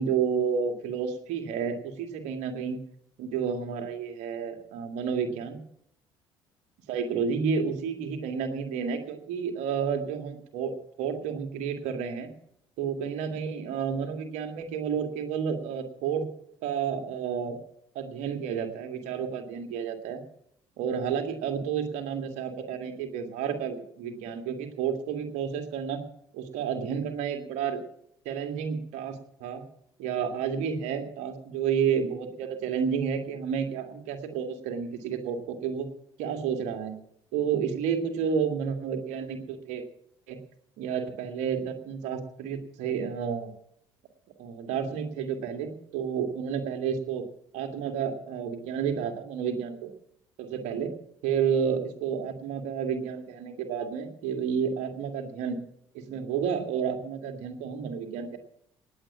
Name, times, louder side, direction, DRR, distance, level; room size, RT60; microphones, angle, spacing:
voice 1, 0.0-2.8 3.2-5.6 6.9-12.3 12.8-16.3 16.6-17.6 17.9-20.2 20.8-26.0 26.3-27.8 28.3-29.6 30.0-35.9 36.2-37.0 37.3-39.8 40.3-40.4 40.8-43.5 44.4-47.2 47.5-49.9 50.4-50.9 51.2-55.6 55.9-58.4, right 7 dB, 60° right, 5 dB, 2.2 m, -30 dB
19.0 x 8.2 x 7.2 m, 0.70 s
figure-of-eight pair, 55°, 14 cm